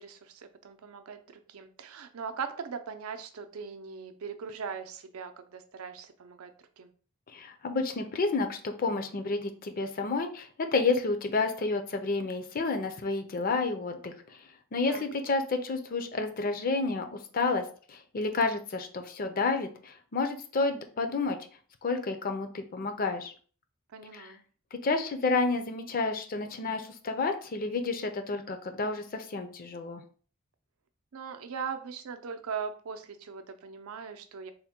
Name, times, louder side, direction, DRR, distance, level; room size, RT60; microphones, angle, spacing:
voice 1, 0.0-6.5 6.8-6.9 14.9-15.1 23.9-24.4 31.1-34.5, right 6 dB, 85° right, 8 dB, 0.5 m, -40 dB
voice 2, 7.3-17.1 17.3-21.4 21.8-23.3 24.1-24.3 24.8-30.0, left 3 dB, 40° left, 7 dB, 0.5 m, -30 dB
3.5 x 2.1 x 4.2 m, 0.42 s
head